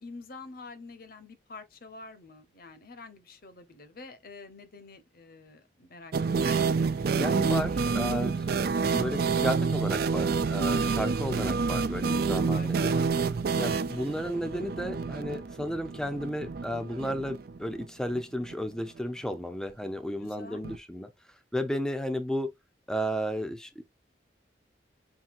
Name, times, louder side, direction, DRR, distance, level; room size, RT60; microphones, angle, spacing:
voice 1, 0.0-6.5 12.3-13.1 20.2-20.6, left 3 dB, 50° left, 0.9 m, -47 dB
sound 1, 6.1-17.9 18.1-18.2 18.5-18.6 20.6-20.8, right 5 dB, 55° right, 0.4 m, -28 dB
voice 2, 7.1-8.5 8.9-13.0 13.6-21.1 21.5-22.5 22.9-23.8, equal, 5° left, 0.6 m, -33 dB
5.8 x 2.7 x 2.5 m
head